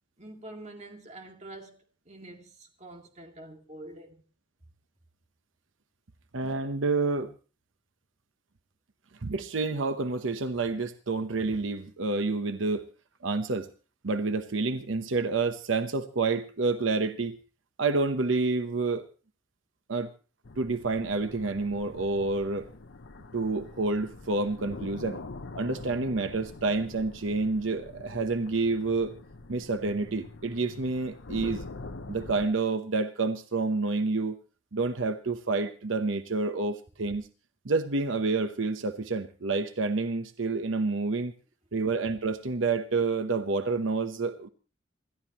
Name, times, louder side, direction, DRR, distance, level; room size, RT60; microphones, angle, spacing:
voice 1, 0.2-4.2, right 1 dB, 35° right, 2.3 m, -46 dB
voice 2, 6.3-7.3 9.2-12.8 13.2-13.7 14.0-17.4 17.8-19.0 19.9-20.1 20.6-22.7 23.3-25.2 25.5-29.1 29.5-31.6 32.1-34.4 34.7-37.3 37.6-41.3 41.7-44.5, right 3 dB, 85° right, 0.9 m, -28 dB
sound 1, 20.4-32.5, left 3 dB, 75° left, 0.9 m, -44 dB
27.0 x 12.5 x 3.0 m
head